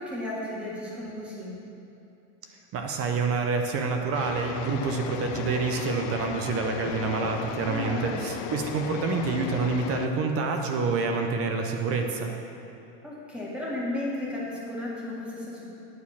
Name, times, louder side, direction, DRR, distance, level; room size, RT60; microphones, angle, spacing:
voice 1, 0.0-1.5 7.6-8.3 13.0-15.7, left 1 dB, ahead, -6 dB, 1.6 m, -34 dB
voice 2, 2.7-12.4, right 4 dB, 30° right, 3 dB, 0.6 m, -27 dB
sound 1, 4.1-10.1, left 10 dB, 45° left, 0.4 m, -36 dB
9.6 x 4.3 x 7.1 m, 2.8 s
supercardioid pair, 145°, 48 cm